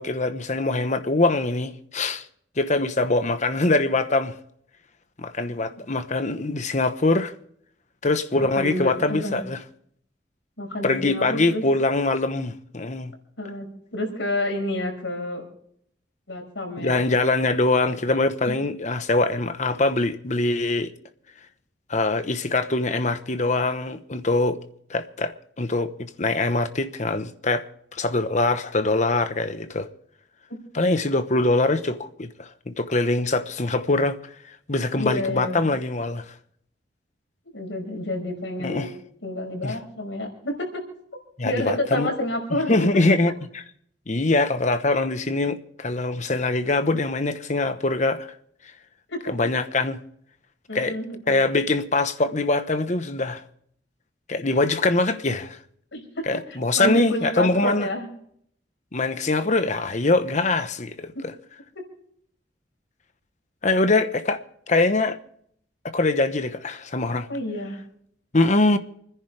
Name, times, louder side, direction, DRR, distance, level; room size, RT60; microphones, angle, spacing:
voice 1, 0.0-2.2 2.6-4.3 5.2-7.3 8.0-9.6 10.8-13.1 16.8-20.9 21.9-24.6 24.9-27.7 27.9-29.9 30.7-34.2 34.7-36.2 38.6-38.9 39.6-39.7 41.4-42.1 42.7-43.3 44.1-48.3 49.3-50.0 50.7-50.9 51.3-53.4 54.3-55.6 56.3-57.9 58.9-61.1 63.6-65.2 65.9-67.3 68.3-68.8, left 2 dB, 40° left, 1.1 m, -23 dB
voice 2, 8.5-9.4 10.6-11.6 13.4-15.4 16.3-16.9 18.5-18.6 34.9-35.7 37.5-38.9 39.2-40.8 41.4-42.7 49.1-49.2 50.7-51.4 55.9-56.3 56.8-58.1 61.1-61.2 67.3-67.8, left 1 dB, 90° left, 5.5 m, -29 dB
29.0 x 10.5 x 3.4 m
head